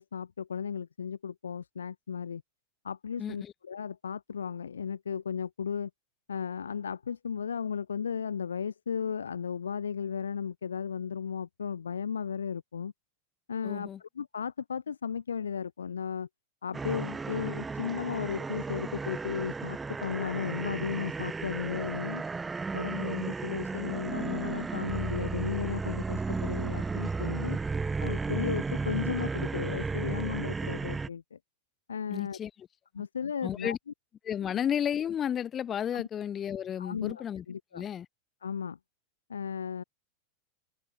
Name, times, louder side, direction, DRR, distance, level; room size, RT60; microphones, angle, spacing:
voice 1, 0.0-2.4 2.8-5.9 6.3-12.9 13.5-16.3 16.6-22.2 22.7-27.6 28.0-31.4 31.9-32.4 32.9-33.8 35.9-36.0 36.8-37.8 38.4-38.8 39.3-39.8, left 7 dB, 70° left, 2.2 m, -35 dB
voice 2, 3.2-3.5 13.6-14.0 32.1-32.5 33.4-33.8 34.2-37.4 37.7-38.1, left 9 dB, 25° left, 1.9 m, -32 dB
sound 1, 16.7-31.1, right 4 dB, 15° right, 1.0 m, -34 dB
figure-of-eight pair, 90°, 0 cm